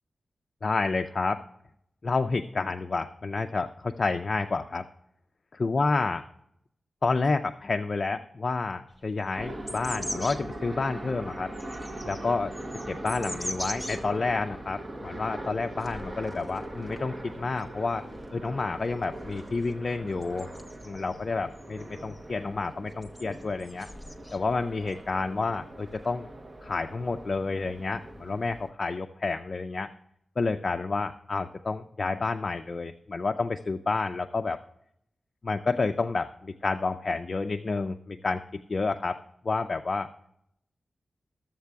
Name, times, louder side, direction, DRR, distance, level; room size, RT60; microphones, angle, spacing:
voice 1, 0.6-1.4 2.0-4.8 5.6-6.2 7.0-11.5 12.0-12.5 12.9-18.0 18.3-20.5 20.8-23.9 24.3-26.3 26.6-29.9 30.4-34.6 35.4-38.4 38.7-39.2 39.4-40.1, left 3 dB, 45° left, 6 dB, 0.4 m, -29 dB
sound 1, 8.9-10.5 11.1-14.0 14.5-14.6 14.9-15.1 15.8-17.1 17.3-21.2 21.5-22.2 22.9-25.0 25.4-26.1, left 1 dB, ahead, 0.9 m, -42 dB
sound 2, 9.4-28.7, right 1 dB, 30° right, 0.8 m, -41 dB
13.0 x 7.4 x 3.4 m, 0.75 s
wide cardioid pair, 125°, 0 cm